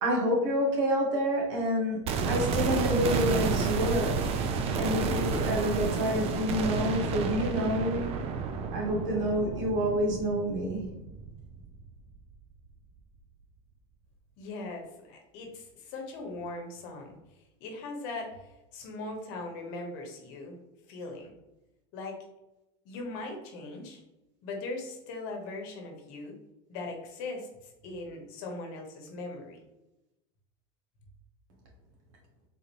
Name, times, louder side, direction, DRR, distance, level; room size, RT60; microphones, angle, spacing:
voice 1, 0.0-4.2 4.8-8.0 8.7-10.9, equal, 80° right, -1 dB, 1.3 m, -28 dB
sound 1, 2.0-12.1 12.3-12.4, right 5 dB, 40° right, 0.4 m, -31 dB
voice 2, 14.4-17.2 17.6-20.6 20.8-21.3 21.9-22.1 22.8-24.0 24.4-26.3 26.7-29.6, left 2 dB, 60° left, 2 dB, 1.0 m, -40 dB
3.9 x 2.6 x 3.0 m, 0.93 s
supercardioid pair, 120°, 16 cm